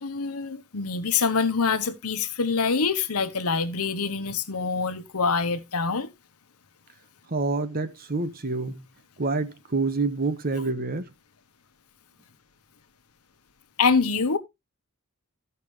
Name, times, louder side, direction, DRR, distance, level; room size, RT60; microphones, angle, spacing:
voice 1, 0.0-6.1 13.8-14.4, left 5 dB, 80° left, 1.0 m, -25 dB
voice 2, 7.3-8.8 9.2-11.1, right 3 dB, 40° right, 1.1 m, -27 dB
14.5 x 5.8 x 3.2 m
head